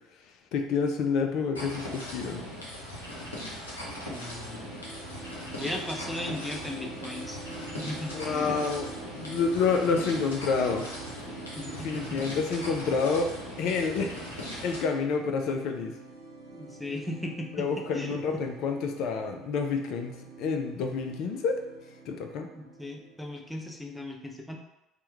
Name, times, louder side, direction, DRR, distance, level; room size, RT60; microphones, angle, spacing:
voice 1, 0.5-2.5 8.1-8.9 9.2-10.8 11.8-13.3 13.6-16.0 17.5-21.6 22.1-22.5, left 5 dB, 60° left, 4 dB, 0.3 m, -28 dB
sound 1, 1.5-14.8, equal, 85° left, 0.7 m, -39 dB
voice 2, 4.1-4.7 5.6-7.4 7.8-8.6 11.6-12.6 16.5-18.2 22.6-24.6, left 1 dB, 5° left, 1 dB, 0.6 m, -37 dB
sound 2, 4.2-23.8, right 4 dB, 65° right, 0.4 m, -46 dB
2.9 x 2.1 x 3.4 m, 0.91 s
figure-of-eight pair, 60°, 0 cm